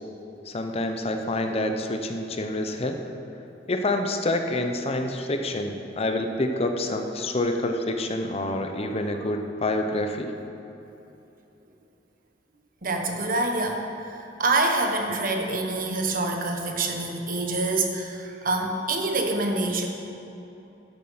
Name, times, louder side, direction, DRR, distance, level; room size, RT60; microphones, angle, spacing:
voice 1, 0.5-3.0 3.7-10.3, left 1 dB, 35° left, 5 dB, 0.7 m, -27 dB
voice 2, 12.8-19.9, right 2 dB, 50° right, 3 dB, 1.2 m, -26 dB
12.0 x 7.6 x 5.7 m, 2.9 s
head